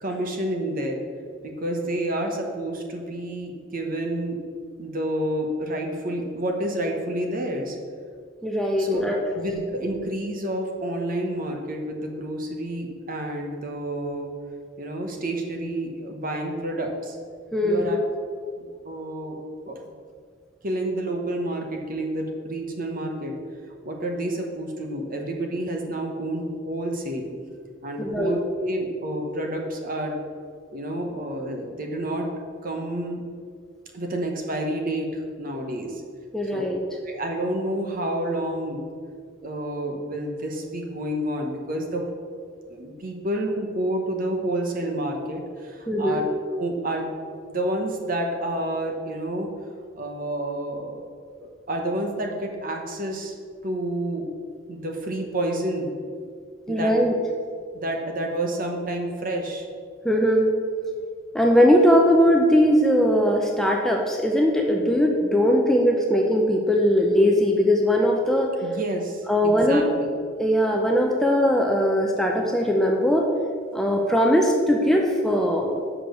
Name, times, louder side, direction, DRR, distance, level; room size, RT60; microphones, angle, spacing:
voice 1, 0.0-1.0 1.4-4.4 4.8-7.8 8.8-9.1 9.3-14.3 14.8-17.2 17.6-18.0 18.6-19.4 19.6-19.8 20.6-23.3 23.8-27.3 27.8-30.2 30.7-32.3 32.6-33.2 33.9-36.0 36.5-36.7 37.0-38.9 39.4-42.1 42.7-46.2 46.6-49.5 50.0-51.0 51.4-53.3 53.6-54.3 54.7-55.9 56.7-56.9 57.7-59.7 68.6-70.1, right 1 dB, 45° right, 2 dB, 1.0 m, -29 dB
voice 2, 8.4-9.2 17.5-18.0 28.0-28.3 36.3-36.8 45.9-46.2 56.7-57.1 60.0-60.5 61.3-68.5 69.3-69.8 70.4-73.3 73.7-75.8, equal, ahead, 0 dB, 0.5 m, -20 dB
6.2 x 5.0 x 6.5 m, 2.1 s
head